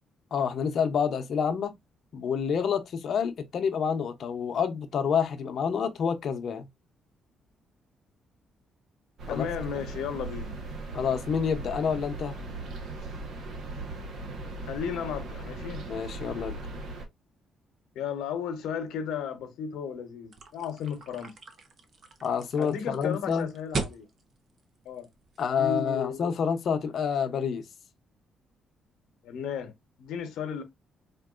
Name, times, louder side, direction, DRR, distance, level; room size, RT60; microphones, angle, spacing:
voice 1, 0.3-1.7 2.1-6.7 9.3-9.5 9.7-9.8 10.9-12.4 15.9-16.6 22.2-23.5 25.4-27.7, left 7 dB, 60° left, 0.7 m, -28 dB
sound 1, 9.2-17.1, right 2 dB, 70° right, 1.1 m, -38 dB
voice 2, 9.3-10.6 14.6-15.8 17.9-21.3 22.6-24.1 24.8-25.1 25.6-26.3 29.2-29.7 30.0-30.6, left 7 dB, 85° left, 0.9 m, -34 dB
sound 2, 20.3-25.7, right 3 dB, 50° right, 0.8 m, -39 dB
4.4 x 2.6 x 2.4 m
cardioid pair, 90°, 0 cm